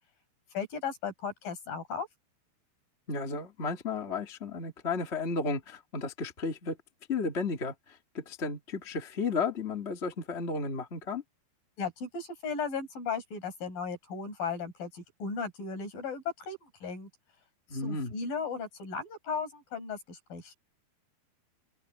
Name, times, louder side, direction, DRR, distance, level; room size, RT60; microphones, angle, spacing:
voice 1, 0.5-2.1 11.8-17.1 17.7-20.5, left 5 dB, 60° left, 7.5 m, -36 dB
voice 2, 3.1-6.8 7.1-11.2 17.7-18.1, left 4 dB, 25° left, 1.7 m, -33 dB
open air
omnidirectional pair, 4.6 m